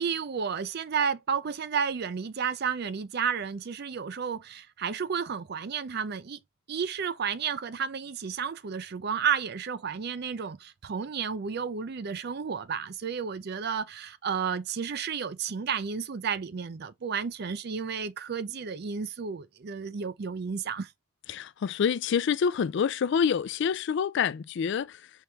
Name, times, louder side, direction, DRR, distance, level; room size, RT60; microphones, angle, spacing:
voice 1, 0.0-6.4 6.7-20.9, right 6 dB, 50° right, 0.5 m, -32 dB
voice 2, 21.3-25.1, left 7 dB, 60° left, 0.3 m, -27 dB
4.6 x 3.5 x 3.1 m
head